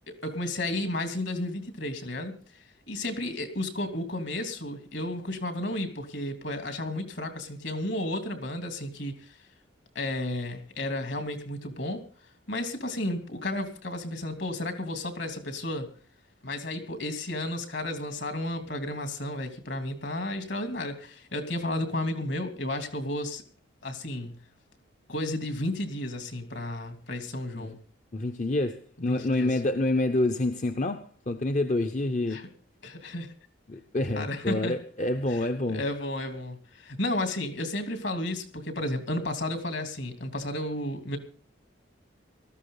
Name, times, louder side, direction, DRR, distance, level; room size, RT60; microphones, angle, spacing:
voice 1, 0.1-2.4 2.9-9.4 9.9-12.0 12.5-15.9 16.4-23.4 23.8-24.4 25.1-27.8 29.1-29.5 32.3-32.5 32.8-33.3 34.1-34.8 35.3-41.2, left 1 dB, 65° left, 2.9 m, -33 dB
voice 2, 28.1-32.4 33.7-35.8, left 2 dB, 40° left, 0.7 m, -28 dB
19.0 x 14.0 x 3.9 m
head